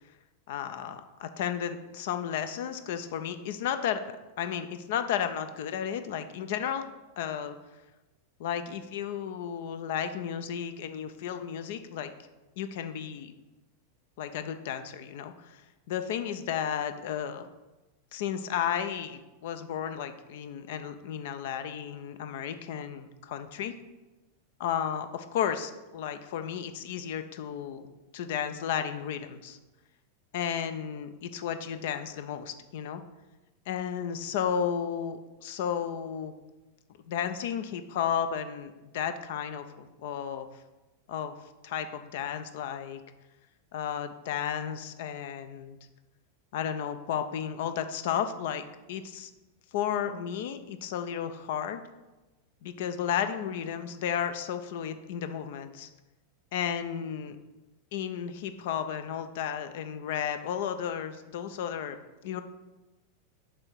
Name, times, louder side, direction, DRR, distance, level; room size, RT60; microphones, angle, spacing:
voice 1, 0.5-4.0 4.4-6.8 7.2-7.6 8.4-12.1 12.6-13.3 14.2-15.6 15.9-17.5 18.1-23.8 24.6-29.6 30.3-33.0 33.7-36.3 37.1-40.5 41.1-41.3 41.6-43.0 43.7-45.8 46.5-49.3 49.7-51.8 52.6-55.9 56.5-57.4 57.9-62.0 62.2-62.4, left 8 dB, 55° left, 10 dB, 0.5 m, -33 dB
7.5 x 3.5 x 4.5 m, 1.1 s
figure-of-eight pair, 90°, 0 cm